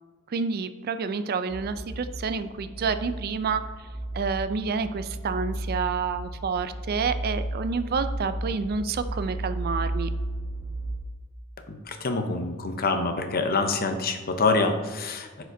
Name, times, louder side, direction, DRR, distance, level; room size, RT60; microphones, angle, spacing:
voice 1, 0.3-3.6 4.1-10.1, right 5 dB, 50° right, 11 dB, 0.4 m, -29 dB
sound 1, 1.5-11.0, right 1 dB, 10° right, 1.4 m, -34 dB
voice 2, 11.7-15.4, left 3 dB, 45° left, 6 dB, 0.7 m, -26 dB
10.0 x 4.9 x 2.7 m, 1.4 s
head